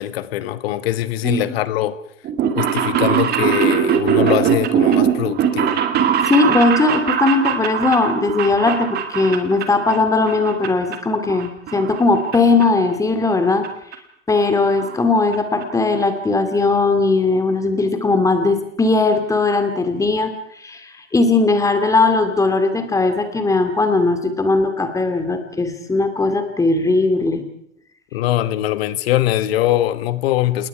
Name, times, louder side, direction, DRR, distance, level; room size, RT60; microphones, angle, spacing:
voice 1, 0.0-2.0 2.5-5.8 28.1-30.7, left 13 dB, 50° left, 13 dB, 1.5 m, -22 dB
sound 1, 2.2-10.0 10.3-11.0 11.3-12.4 12.6-12.7 13.6-13.7 13.9-14.0 14.3-14.4 14.7-14.9 15.3-15.4 15.6-15.7, right 8 dB, 25° right, 2.3 m, -20 dB
voice 2, 6.3-13.7 14.3-27.5, left 3 dB, 10° left, 8 dB, 2.4 m, -18 dB
30.0 x 19.0 x 4.8 m, 0.70 s
hypercardioid pair, 120°, 39 cm